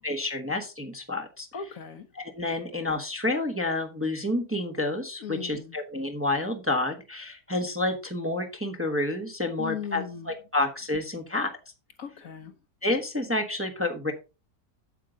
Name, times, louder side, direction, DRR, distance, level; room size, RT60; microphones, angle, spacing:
voice 1, 0.0-1.5 2.1-11.5 12.8-14.1, left 2 dB, 10° right, 1.1 m, -29 dB
voice 2, 1.5-2.1 5.2-5.7 9.6-10.3 12.0-12.5, left 7 dB, 60° left, 1.2 m, -37 dB
8.4 x 7.7 x 3.9 m
omnidirectional pair, 1.8 m